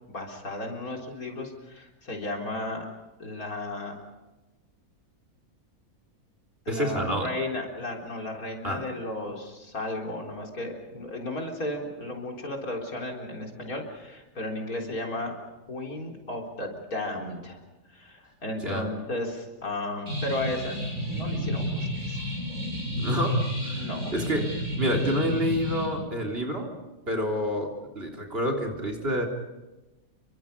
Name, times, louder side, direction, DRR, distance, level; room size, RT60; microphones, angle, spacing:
voice 1, 0.1-2.9 3.2-3.9 6.7-15.4 15.7-17.6 17.9-20.8 21.1-22.2 23.7-24.1, left 1 dB, 80° left, 1 dB, 4.4 m, -34 dB
voice 2, 6.7-7.3 8.6-8.9 18.6-18.9 23.0-24.5 24.8-26.7 27.1-29.3, equal, 40° right, 4 dB, 3.9 m, -28 dB
sound 1, 20.1-25.9, equal, 65° right, 7.3 m, -31 dB
29.5 x 23.5 x 5.4 m, 1.1 s
omnidirectional pair, 1.5 m